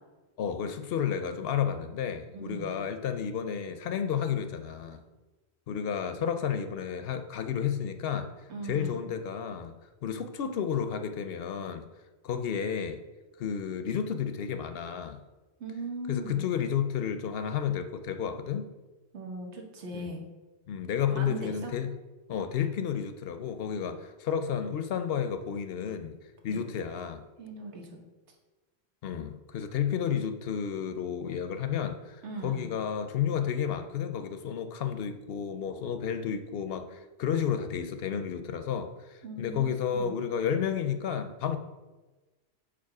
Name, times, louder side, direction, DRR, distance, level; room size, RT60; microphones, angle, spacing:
voice 1, 0.4-5.0 5.7-8.3 8.6-9.7 10.0-11.8 12.2-13.0 13.4-15.2 16.1-18.7 19.9-20.1 20.7-21.9 22.3-26.2 26.4-27.2 29.0-41.6, left 8 dB, 65° left, 9 dB, 0.7 m, -31 dB
voice 2, 2.3-2.8 8.5-9.1 15.6-16.5 19.1-20.2 21.1-21.7 26.5-26.6 27.4-28.0 32.2-32.7 39.2-39.6 39.9-40.2, right 2 dB, 90° right, 2 dB, 1.4 m, -39 dB
5.0 x 4.3 x 5.8 m, 1.2 s
omnidirectional pair, 1.1 m